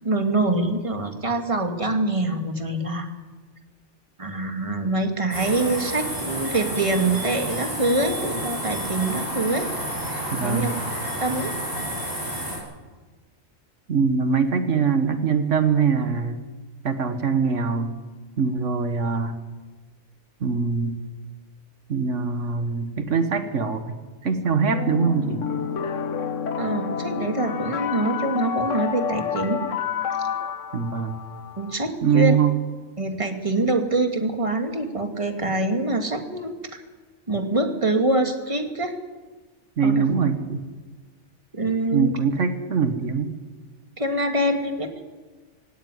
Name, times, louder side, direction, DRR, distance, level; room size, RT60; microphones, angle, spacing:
voice 1, 0.0-3.1 4.2-9.7 10.1-10.7 11.2-11.5 26.6-29.6 31.6-32.3 33.0-36.8 37.3-38.9 39.8-40.0 41.5-42.1 44.0-45.0, right 2 dB, 25° right, 5 dB, 2.3 m, -25 dB
sound 1, 5.3-12.6, equal, 50° right, 7.7 m, -30 dB
voice 2, 10.3-10.7 13.9-16.4 16.8-17.9 18.4-19.4 20.4-21.0 21.9-25.4 30.7-31.2 32.0-32.5 39.8-40.6 41.9-43.3, right 6 dB, 80° right, 8 dB, 1.7 m, -23 dB
sound 2, 24.7-31.7, left 7 dB, 90° left, 1.4 m, -29 dB
22.0 x 17.0 x 9.9 m, 1.3 s
omnidirectional pair, 1.3 m